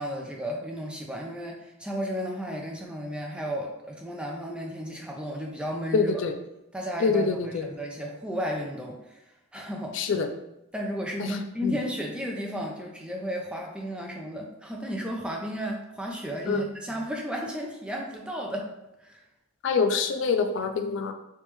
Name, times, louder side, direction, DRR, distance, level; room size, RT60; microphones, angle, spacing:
voice 1, 0.0-6.2 6.7-9.2 9.5-10.1 10.7-18.7 19.0-19.2, equal, 5° right, 0 dB, 0.4 m, -33 dB
voice 2, 5.9-6.4 7.0-7.7 9.9-10.3 11.2-11.8 16.5-16.7 19.6-21.1, left 4 dB, 60° left, 7 dB, 0.3 m, -25 dB
3.3 x 3.0 x 3.1 m, 0.89 s
head